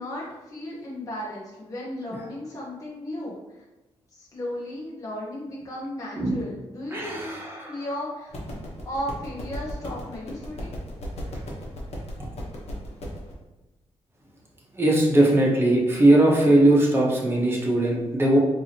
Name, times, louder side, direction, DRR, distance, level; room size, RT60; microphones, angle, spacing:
voice 1, 0.0-3.6 4.1-7.4 7.7-8.3 8.8-10.8, left 1 dB, 30° left, -6 dB, 0.9 m, -35 dB
voice 2, 6.9-7.9 14.7-18.4, right 1 dB, 20° right, -3 dB, 1.1 m, -20 dB
sound 1, 8.3-13.3, equal, 60° left, 1.1 m, -36 dB
4.7 x 2.8 x 2.9 m, 1.1 s
wide cardioid pair, 115°, 12 cm